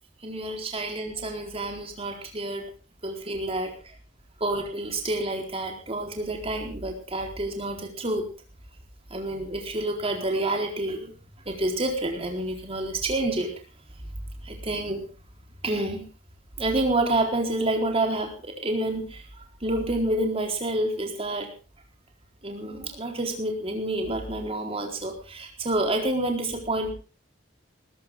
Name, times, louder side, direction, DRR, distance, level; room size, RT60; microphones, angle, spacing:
voice 1, 0.2-2.7 3.0-3.7 4.4-8.3 9.1-11.1 11.5-13.5 14.4-15.0 15.6-16.0 16.6-19.2 19.6-21.5 22.4-26.9, right 1 dB, 30° right, 3 dB, 4.1 m, -28 dB
19.5 x 14.5 x 3.7 m, 0.35 s
head